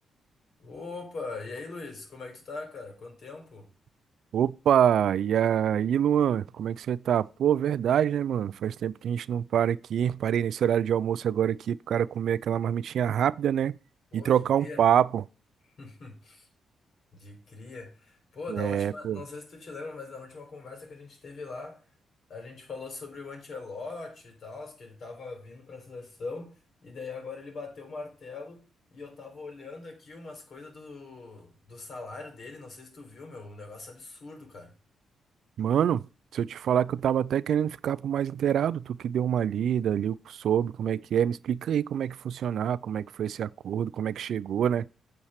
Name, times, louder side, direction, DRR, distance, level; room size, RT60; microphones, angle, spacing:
voice 1, 0.6-3.7 14.1-14.9 15.8-16.5 17.1-21.8 22.3-34.8, left 3 dB, 55° left, 4.1 m, -41 dB
voice 2, 4.3-13.8 14.1-15.2 18.5-19.2 35.6-36.0 36.3-44.9, right 9 dB, 70° right, 0.3 m, -26 dB
8.7 x 4.5 x 6.4 m
cardioid pair, 85°, 0 cm